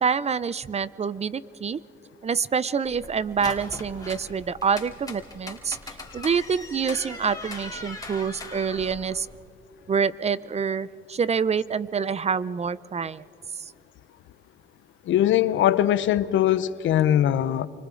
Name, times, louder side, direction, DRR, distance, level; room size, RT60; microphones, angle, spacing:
voice 1, 0.0-1.8 2.2-9.3 9.9-13.2 13.6-13.7, right 6 dB, 35° right, 0.5 m, -27 dB
sound 1, 2.8-9.4, left 2 dB, 20° left, 3.3 m, -40 dB
voice 2, 15.1-17.7, left 11 dB, 75° left, 0.7 m, -21 dB
28.5 x 25.0 x 3.8 m
cardioid pair, 90°, 20 cm